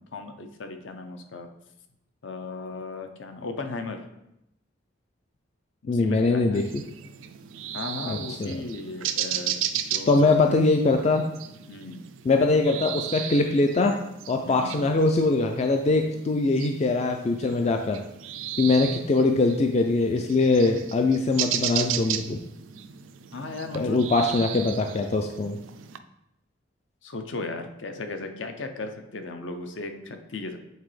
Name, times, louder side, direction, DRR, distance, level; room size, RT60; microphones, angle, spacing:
voice 1, 0.0-1.5 2.2-4.0 5.8-6.7 7.7-10.1 11.7-12.0 14.4-14.7 23.3-24.1 24.7-24.9 27.0-30.6, left 3 dB, 70° left, 6 dB, 0.7 m, -36 dB
voice 2, 5.9-6.7 8.1-8.6 10.1-11.3 12.3-14.0 14.3-18.0 18.6-22.4 23.7-25.6, left 3 dB, 35° left, 4 dB, 0.4 m, -22 dB
sound 1, 6.5-26.0, right 10 dB, 80° right, 0.4 m, -35 dB
8.1 x 4.0 x 3.2 m, 0.83 s
head